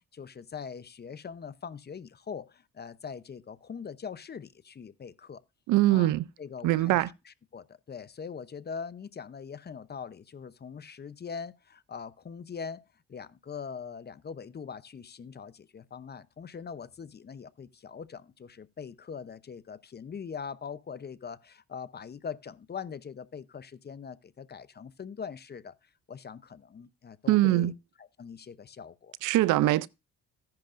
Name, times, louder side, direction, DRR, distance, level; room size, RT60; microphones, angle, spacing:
voice 1, 0.1-5.4 5.9-6.1 6.4-7.0 7.5-25.8 26.1-27.7 28.2-29.1, left 6 dB, 35° left, 0.7 m, -42 dB
voice 2, 5.7-6.3 6.6-7.1 27.3-27.7 29.2-29.9, right 16 dB, 90° right, 0.5 m, -23 dB
14.5 x 10.5 x 2.5 m
cardioid pair, 90°, 30 cm